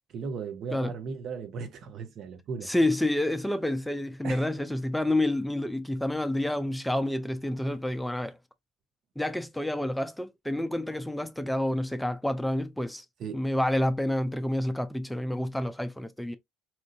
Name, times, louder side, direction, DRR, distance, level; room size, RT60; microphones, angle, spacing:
voice 1, 0.1-2.7 4.2-4.5 13.2-13.4, right 5 dB, 50° right, 0.8 m, -37 dB
voice 2, 2.6-8.4 9.2-13.1 13.3-16.4, left 1 dB, 5° left, 0.4 m, -28 dB
4.3 x 2.5 x 2.4 m
figure-of-eight pair, 60°, 0 cm